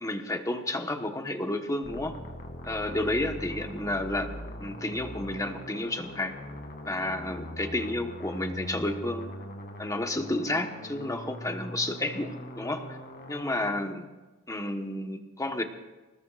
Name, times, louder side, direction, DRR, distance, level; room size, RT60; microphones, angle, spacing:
voice 1, 0.0-2.2 2.6-4.3 4.6-6.4 6.8-9.3 9.8-13.0 13.3-14.1 14.5-15.6, left 1 dB, 15° left, 4 dB, 1.3 m, -31 dB
sound 1, 1.8-13.7, left 1 dB, 50° left, 2.5 m, -41 dB
26.5 x 19.0 x 2.5 m, 1.2 s
head